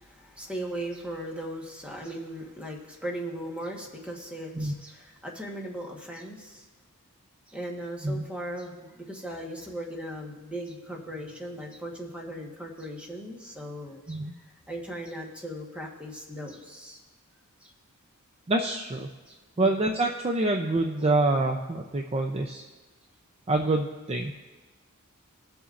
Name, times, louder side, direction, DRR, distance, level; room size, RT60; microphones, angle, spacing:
voice 1, 0.0-6.6 7.5-14.2 14.7-17.0 17.6-17.7 19.3-19.7, right 1 dB, 5° right, -1 dB, 1.3 m, -38 dB
voice 2, 18.5-19.1 19.6-22.7 23.5-24.3, right 2 dB, 25° right, 3 dB, 0.5 m, -26 dB
20.0 x 7.0 x 2.5 m, 1.2 s
head